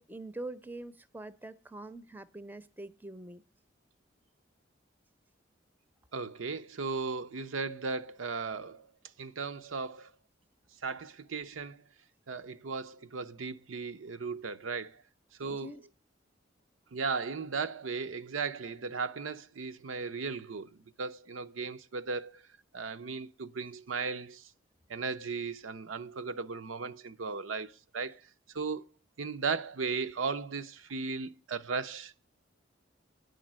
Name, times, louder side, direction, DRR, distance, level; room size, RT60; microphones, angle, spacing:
voice 1, 0.0-3.4 15.4-15.8, right 2 dB, 10° right, 0.5 m, -44 dB
voice 2, 6.1-8.9 9.2-10.1 10.8-11.8 12.3-15.0 15.4-15.8 16.9-22.4 22.7-24.5 24.9-28.2 28.5-28.9 29.2-32.2, right 4 dB, 85° right, 0.6 m, -36 dB
9.4 x 5.1 x 7.4 m
head